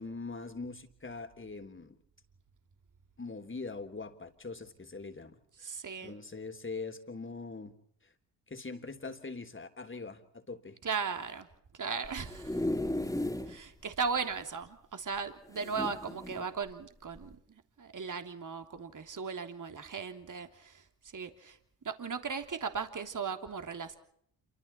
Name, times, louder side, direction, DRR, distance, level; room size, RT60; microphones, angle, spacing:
voice 1, 0.0-2.0 3.2-5.7 6.0-7.7 8.0-8.1 8.5-10.8, left 3 dB, 25° left, 7 dB, 3.6 m, -42 dB
voice 2, 5.6-6.1 10.8-11.5 11.7-12.9 13.5-21.6 21.8-24.0, right 5 dB, 45° right, 7 dB, 3.1 m, -37 dB
sound 1, 12.0-13.6 14.0-14.1 14.3-14.4 15.5-16.5 17.1-17.3, left 1 dB, 5° left, 3.1 m, -35 dB
28.0 x 25.5 x 4.3 m, 0.68 s
supercardioid pair, 50°, 44 cm